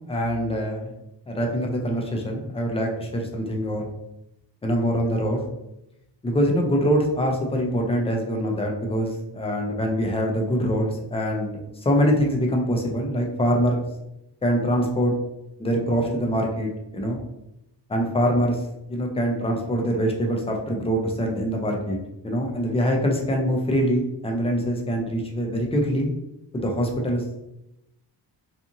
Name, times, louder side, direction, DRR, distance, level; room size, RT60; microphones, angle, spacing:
voice 1, 0.1-0.9 1.3-3.9 4.6-5.4 6.2-13.8 14.4-15.1 15.6-17.2 17.9-18.6 18.9-22.0 22.2-26.1 26.5-27.2, equal, 15° left, 1 dB, 0.3 m, -24 dB
2.8 x 2.4 x 2.5 m, 0.88 s
wide cardioid pair, 155°, 44 cm